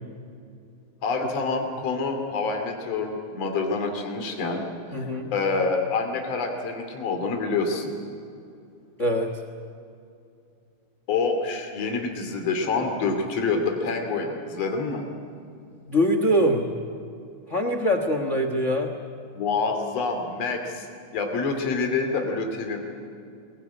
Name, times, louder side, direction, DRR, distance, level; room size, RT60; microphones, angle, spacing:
voice 1, 1.0-7.9 11.1-15.1 19.3-20.9 21.1-22.8, left 4 dB, 50° left, 3 dB, 3.6 m, -27 dB
voice 2, 4.9-5.3 9.0-9.3 15.9-16.7 17.5-18.9, equal, 70° left, 6 dB, 0.7 m, -23 dB
23.5 x 20.5 x 9.7 m, 2.5 s
omnidirectional pair, 4.0 m